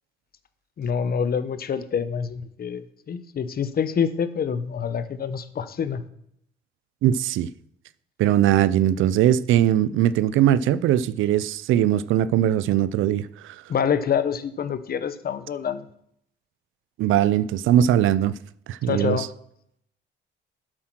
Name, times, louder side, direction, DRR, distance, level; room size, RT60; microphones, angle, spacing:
voice 1, 0.8-6.0 13.7-15.9 18.8-19.3, left 7 dB, 50° left, 0.9 m, -26 dB
voice 2, 7.0-7.5 8.2-13.6 17.0-18.4 18.7-19.3, right 11 dB, 80° right, 0.5 m, -20 dB
8.7 x 7.6 x 6.1 m
cardioid pair, 90°, 20 cm